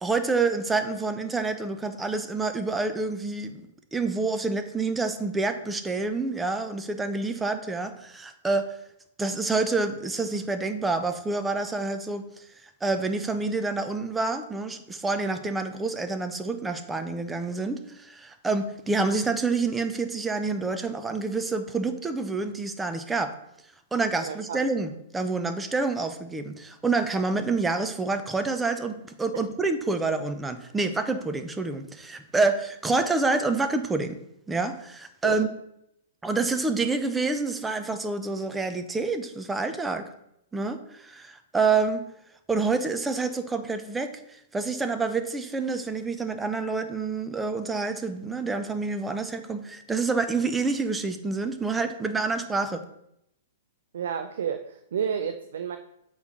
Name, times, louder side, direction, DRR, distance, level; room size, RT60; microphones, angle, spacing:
voice 1, 0.0-3.6 3.9-8.8 9.2-12.4 12.8-23.3 23.9-34.2 34.5-35.5 36.2-40.1 40.5-42.1 42.5-52.8, right 3 dB, 10° right, 8 dB, 0.6 m, -28 dB
voice 2, 24.2-24.6 29.3-29.4 35.2-35.4 53.9-55.8, right 7 dB, 60° right, 8 dB, 0.4 m, -31 dB
8.2 x 3.2 x 5.4 m, 0.79 s
figure-of-eight pair, 105°, 0 cm